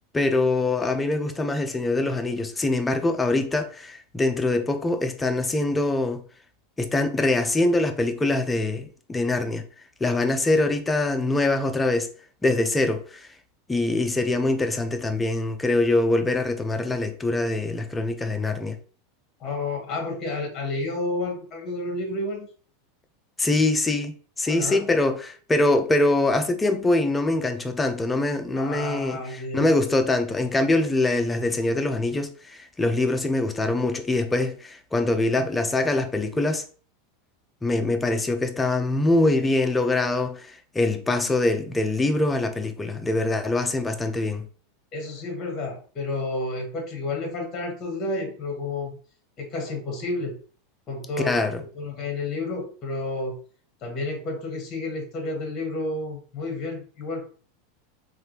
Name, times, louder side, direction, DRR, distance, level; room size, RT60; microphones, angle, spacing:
voice 1, 0.1-6.2 6.8-9.6 10.0-12.1 12.4-13.3 13.7-18.8 23.4-36.6 37.6-44.5 51.2-51.6, left 2 dB, 10° left, 0.4 m, -24 dB
voice 2, 19.4-22.5 24.5-24.8 28.6-29.7 44.9-49.0 49.4-50.4 50.9-51.4 51.7-53.4 53.8-57.3, left 2 dB, 25° left, 1.0 m, -30 dB
3.3 x 2.4 x 2.8 m
supercardioid pair, 145°, 0 cm